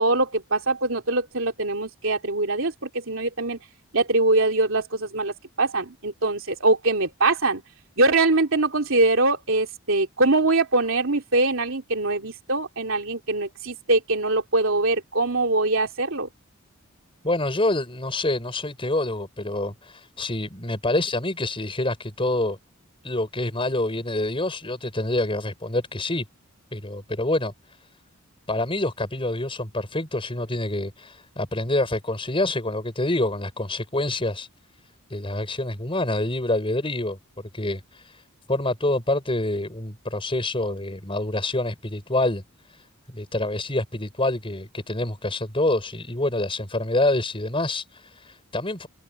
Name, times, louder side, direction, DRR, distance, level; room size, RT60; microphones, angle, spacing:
voice 1, 0.0-3.6 3.9-7.6 8.0-16.3, right 2 dB, 65° right, 3.3 m, -23 dB
voice 2, 17.2-22.6 23.0-26.3 26.7-27.5 28.5-34.5 35.1-37.2 37.5-38.2 38.5-42.4 43.1-48.9, left 2 dB, 25° left, 6.1 m, -26 dB
head